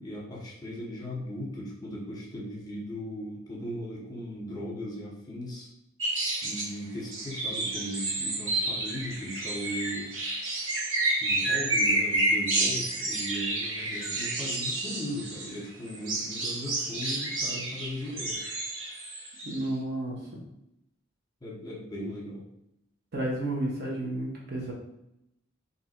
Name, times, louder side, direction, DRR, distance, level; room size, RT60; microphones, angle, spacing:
voice 1, 0.0-5.7 6.4-10.2 11.2-18.4 21.4-22.4, equal, 20° left, -3 dB, 1.1 m, -37 dB
sound 1, 6.0-6.7 7.1-15.5 15.9-19.6, right 2 dB, 85° right, 1.2 m, -30 dB
voice 2, 19.4-20.2 23.1-24.7, right 1 dB, 55° right, -3 dB, 1.1 m, -31 dB
3.7 x 2.7 x 4.4 m, 0.82 s
head